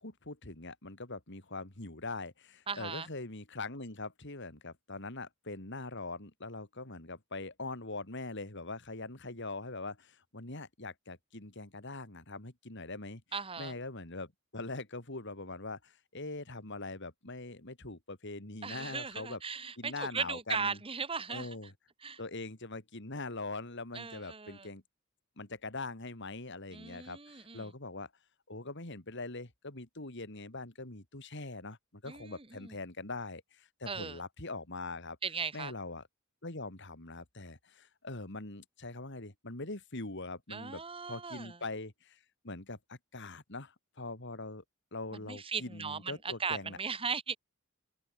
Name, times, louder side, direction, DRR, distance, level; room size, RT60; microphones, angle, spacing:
voice 1, 0.0-13.2 13.6-19.4 19.8-20.8 21.3-21.7 22.2-24.8 25.4-28.1 28.5-35.2 35.5-36.0 36.4-40.8 41.1-42.2 42.4-44.6 44.9-46.8, left 3 dB, 60° left, 3.2 m, -42 dB
voice 2, 2.7-3.1 13.3-13.7 18.6-21.5 22.0-22.2 23.9-24.7 26.7-27.7 32.1-32.7 33.9-34.2 35.2-35.7 40.5-41.6 45.3-47.4, right 5 dB, 25° right, 1.9 m, -38 dB
head